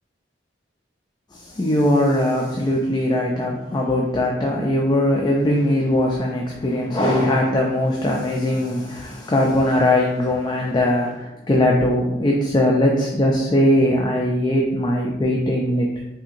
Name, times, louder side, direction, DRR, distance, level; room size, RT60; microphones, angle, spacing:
voice 1, 1.3-15.9, left 1 dB, 25° left, -1 dB, 0.4 m, -20 dB
5.6 x 2.6 x 2.6 m, 0.94 s
head